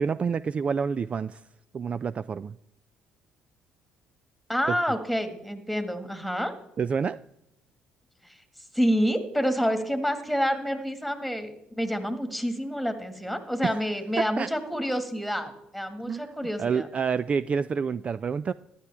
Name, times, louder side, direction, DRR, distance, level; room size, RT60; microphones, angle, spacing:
voice 1, 0.0-1.4 1.7-2.6 4.7-4.8 6.8-7.2 13.6-13.8 14.2-14.5 16.1-16.3 16.6-18.5, right 6 dB, 40° right, 16 dB, 0.3 m, -28 dB
voice 2, 4.5-6.5 8.2-8.4 8.7-16.9, equal, ahead, 8 dB, 1.8 m, -28 dB
14.5 x 11.0 x 3.5 m, 0.82 s
supercardioid pair, 70°, 3 cm